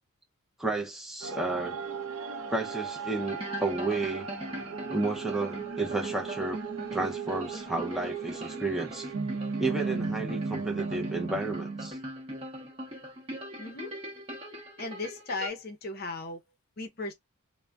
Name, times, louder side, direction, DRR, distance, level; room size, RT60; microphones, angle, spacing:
voice 1, 0.6-1.8 2.5-4.3 4.9-6.6 6.9-9.1 9.6-12.0, right 2 dB, ahead, 0.5 m, -32 dB
sound 1, 1.2-11.9, right 5 dB, 80° right, 0.5 m, -36 dB
sound 2, 3.1-15.5, equal, 25° right, 0.9 m, -41 dB
voice 2, 13.6-13.9 14.8-16.4 16.8-17.1, left 3 dB, 45° left, 0.6 m, -36 dB
2.3 x 2.0 x 3.3 m
head